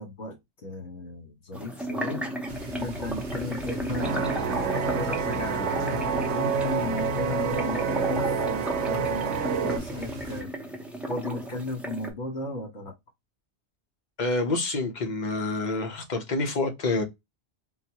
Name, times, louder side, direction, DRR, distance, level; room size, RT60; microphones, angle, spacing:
voice 1, 0.0-2.2 2.8-10.5 11.1-12.9, left 2 dB, 70° left, 1.6 m, -36 dB
sound 1, 1.5-12.1, right 1 dB, ahead, 0.4 m, -34 dB
sound 2, 2.5-10.4, left 1 dB, 45° right, 0.6 m, -39 dB
sound 3, 4.0-9.8, right 6 dB, 80° right, 0.9 m, -28 dB
voice 2, 14.2-17.0, left 2 dB, 45° left, 0.9 m, -27 dB
4.0 x 2.1 x 2.8 m
omnidirectional pair, 1.2 m